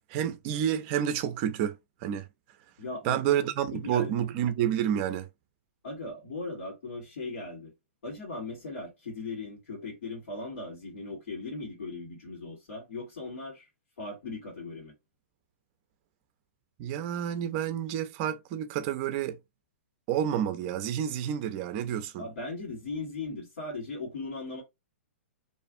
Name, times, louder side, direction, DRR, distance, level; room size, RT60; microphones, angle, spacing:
voice 1, 0.1-2.3 3.0-5.3 16.8-19.4 20.1-22.3, right 10 dB, 40° right, 0.4 m, -29 dB
voice 2, 2.8-4.3 5.8-7.7 8.0-13.7 14.0-14.9 22.2-24.6, left 3 dB, 75° left, 1.3 m, -38 dB
2.4 x 2.4 x 2.5 m
hypercardioid pair, 130°, 7 cm